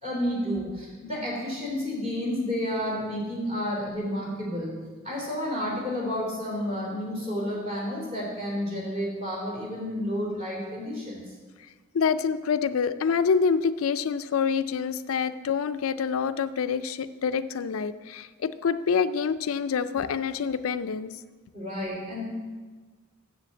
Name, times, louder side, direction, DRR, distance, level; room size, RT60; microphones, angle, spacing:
voice 1, 0.0-4.8 5.0-11.3 21.5-22.2, equal, 30° right, -4 dB, 3.5 m, -31 dB
voice 2, 11.9-21.1, left 6 dB, 75° left, 12 dB, 0.4 m, -26 dB
7.7 x 6.9 x 7.6 m, 1.4 s
head